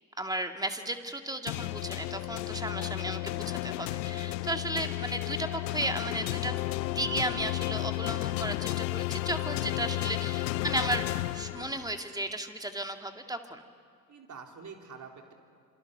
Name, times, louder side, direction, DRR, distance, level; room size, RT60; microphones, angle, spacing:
voice 1, 0.2-13.6, right 1 dB, 10° right, 6 dB, 2.2 m, -35 dB
sound 1, 1.5-12.1, left 18 dB, 80° left, 0.6 m, -33 dB
voice 2, 9.4-10.1 14.1-15.3, right 5 dB, 35° right, 2 dB, 4.0 m, -48 dB
27.0 x 25.0 x 6.8 m, 2.1 s
hypercardioid pair, 60°, 49 cm